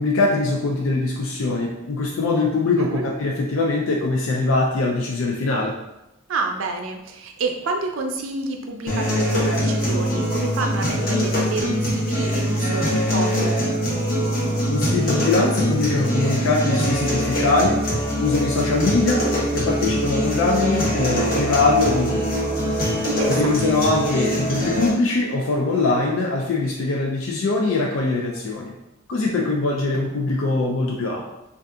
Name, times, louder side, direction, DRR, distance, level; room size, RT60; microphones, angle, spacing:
voice 1, 0.0-2.9 3.2-5.7 14.7-19.2 19.5-22.3 22.8-28.7 29.1-31.2, left 3 dB, 80° left, -1 dB, 0.4 m, -22 dB
voice 2, 6.3-13.6 23.1-23.8, right 3 dB, 85° right, 4 dB, 0.5 m, -29 dB
sound 1, 8.9-24.9, equal, 45° left, 0.9 m, -23 dB
2.6 x 2.4 x 3.5 m, 0.92 s
head